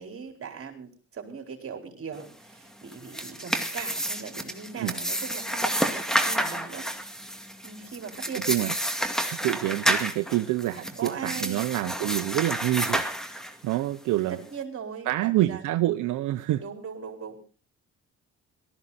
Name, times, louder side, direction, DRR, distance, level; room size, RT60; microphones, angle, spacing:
voice 1, 0.0-6.9 7.6-8.5 10.8-11.7 14.3-15.6 16.6-17.4, right 6 dB, 45° right, 3 dB, 4.5 m, -39 dB
sound 1, 2.9-13.8, equal, ahead, 2.1 m, -30 dB
voice 2, 8.3-8.7 9.3-13.0 13.6-14.4 15.1-16.6, right 15 dB, 85° right, 8 dB, 0.8 m, -27 dB
18.5 x 14.0 x 4.2 m, 0.38 s
cardioid pair, 90°, 30 cm